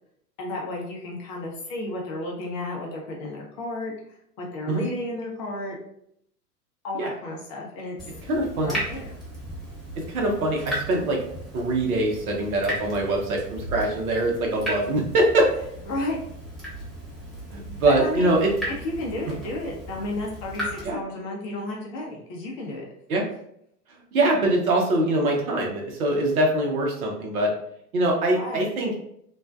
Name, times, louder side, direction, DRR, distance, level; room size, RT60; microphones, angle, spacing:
voice 1, 0.4-5.8 6.8-8.0 8.5-9.1 15.9-16.2 17.9-22.8 28.3-28.7, left 2 dB, 30° left, -2 dB, 0.6 m, -32 dB
Water tap faucet / Drip, 8.0-20.9, right 1 dB, ahead, 1.0 m, -36 dB
voice 2, 8.3-8.7 10.1-11.2 11.5-15.5 17.5-18.5 20.8-21.0 23.1-23.2 24.1-27.5 27.9-28.9, right 1 dB, 65° right, 0 dB, 0.8 m, -23 dB
2.5 x 2.1 x 2.3 m, 0.71 s
figure-of-eight pair, 95°, 46 cm